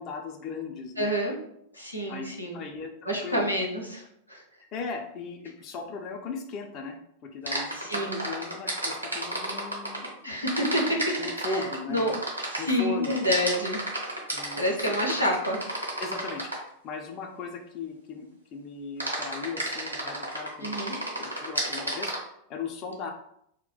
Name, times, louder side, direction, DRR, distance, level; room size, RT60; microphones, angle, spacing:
voice 1, 0.0-1.1 2.1-3.5 4.7-10.4 10.9-12.1 12.6-13.2 14.3-15.1 16.0-16.5 16.8-20.8 21.2-23.1, left 4 dB, 35° left, 2 dB, 0.4 m, -37 dB
voice 2, 1.0-1.4 1.7-2.6 3.1-4.4 7.7-8.2 10.2-11.1 11.4-12.2 12.5-13.8 14.6-15.6 20.6-20.9, equal, 90° left, -1 dB, 0.6 m, -28 dB
sound 1, 7.5-10.1 10.5-16.7 19.0-22.2, right 1 dB, 90° right, 0.9 m, -31 dB
2.2 x 2.1 x 3.8 m, 0.74 s
figure-of-eight pair, 90°, 0 cm